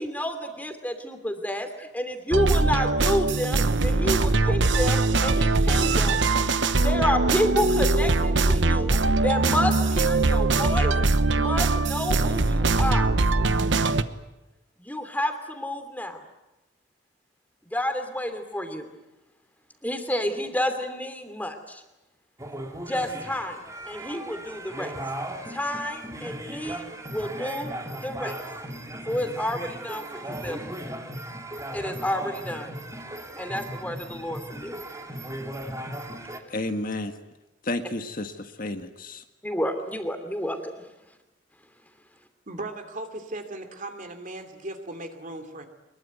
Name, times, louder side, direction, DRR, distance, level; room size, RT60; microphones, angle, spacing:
voice 1, 0.0-6.2 6.6-13.1 14.8-16.2 17.7-18.9 19.8-21.8 22.8-24.9 25.5-28.4 29.1-30.7 31.7-32.7 33.4-34.8 39.4-40.7, left 1 dB, 10° left, 7 dB, 2.9 m, -30 dB
sound 1, 2.3-14.0, right 3 dB, 75° right, 1.0 m, -22 dB
sound 2, 22.4-36.4, right 1 dB, 15° right, 2.3 m, -37 dB
voice 2, 36.5-37.2 37.6-39.2, left 2 dB, 50° left, 7 dB, 1.6 m, -31 dB
voice 3, 42.5-45.7, right 2 dB, 45° right, 7 dB, 2.8 m, -37 dB
23.5 x 22.0 x 9.4 m, 1.0 s
head